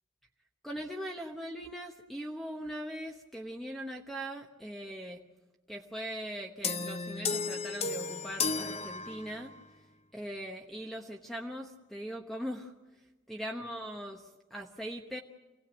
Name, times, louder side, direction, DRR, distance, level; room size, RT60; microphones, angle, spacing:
voice 1, 0.6-5.2 5.7-9.5 10.1-15.2, equal, ahead, 2 dB, 1.0 m, -40 dB
sound 1, 6.6-9.6, left 4 dB, 30° left, 0.7 m, -34 dB
26.0 x 17.5 x 9.0 m, 1.1 s
head